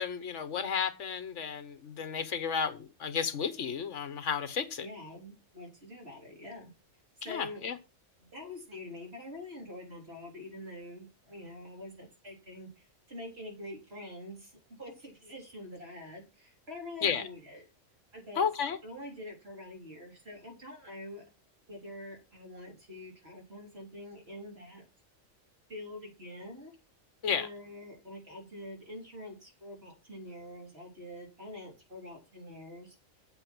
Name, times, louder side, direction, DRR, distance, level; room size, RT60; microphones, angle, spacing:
voice 1, 0.0-4.9 7.3-7.8 17.0-17.3 18.3-18.8 27.2-27.5, left 7 dB, 65° left, 1.4 m, -32 dB
voice 2, 4.8-6.7 7.2-7.6 8.2-17.6 18.1-18.4 18.8-21.2 21.7-24.9 25.7-26.7 27.2-33.0, left 1 dB, 50° right, 4.1 m, -45 dB
7.8 x 7.7 x 6.1 m
omnidirectional pair, 1.4 m